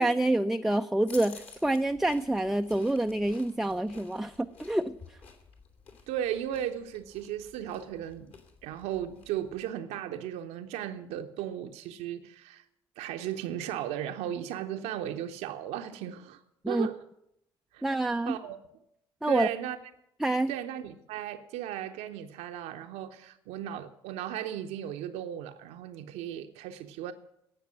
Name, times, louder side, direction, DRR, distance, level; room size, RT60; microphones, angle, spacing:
voice 1, 0.0-5.2 16.6-16.9 17.8-18.3 19.2-19.5 20.2-20.5, right 1 dB, 5° right, 0.5 m, -27 dB
sound 1, 1.1-9.7, left 5 dB, 50° left, 2.7 m, -52 dB
voice 2, 6.1-8.3 8.6-12.6 13.0-16.4 16.7-17.0 17.7-18.6 19.3-19.8 20.5-27.1, right 10 dB, 60° right, 0.7 m, -36 dB
17.5 x 6.7 x 9.7 m
figure-of-eight pair, 50°, 13 cm